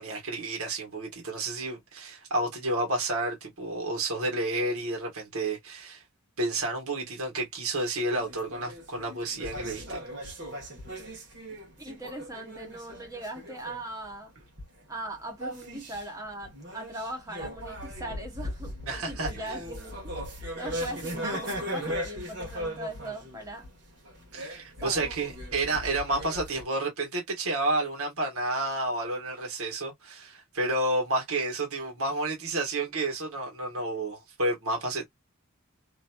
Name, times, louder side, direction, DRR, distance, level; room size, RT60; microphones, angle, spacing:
voice 1, 0.0-6.0 6.4-10.0 18.9-19.5 24.3-35.1, right 2 dB, 80° right, 1.3 m, -30 dB
sound 1, 8.2-14.2 14.4-14.9 15.3-26.6, equal, 50° right, 1.2 m, -38 dB
voice 2, 11.8-14.3 14.9-20.2 20.6-23.7 24.8-25.1, right 1 dB, 15° right, 0.8 m, -39 dB
2.9 x 2.6 x 2.2 m
head